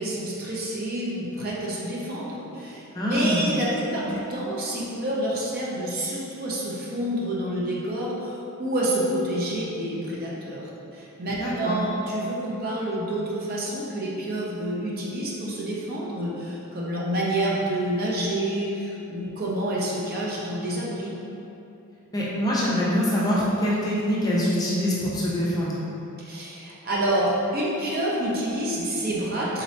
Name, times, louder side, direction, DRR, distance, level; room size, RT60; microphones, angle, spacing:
voice 1, 0.0-2.8 3.1-10.6 10.9-21.1 26.2-29.6, right 1 dB, 40° right, -5 dB, 0.6 m, -28 dB
voice 2, 2.9-3.5 11.4-11.8 22.1-25.8, equal, 15° left, -7 dB, 0.4 m, -24 dB
3.7 x 2.8 x 3.1 m, 3.0 s
head